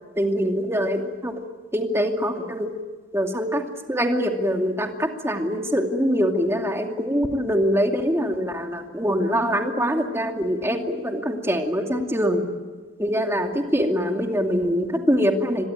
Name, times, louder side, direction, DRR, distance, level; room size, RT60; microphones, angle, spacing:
voice 1, 0.2-1.4 1.7-2.7 3.1-12.4 13.0-15.7, equal, 15° right, 3 dB, 2.5 m, -24 dB
27.0 x 23.0 x 9.1 m, 1.4 s
head